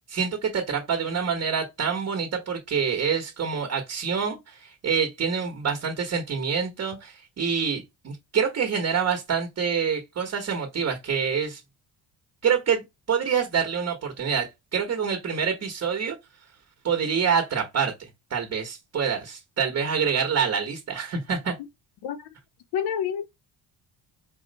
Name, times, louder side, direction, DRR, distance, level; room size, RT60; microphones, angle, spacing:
voice 1, 0.1-11.6 12.4-16.1 16.8-17.9 18.3-21.5, right 6 dB, 40° right, 1.3 m, -26 dB
voice 2, 22.7-23.3, left 8 dB, 70° left, 0.7 m, -28 dB
4.4 x 2.1 x 4.0 m
cardioid pair, 100°, 41 cm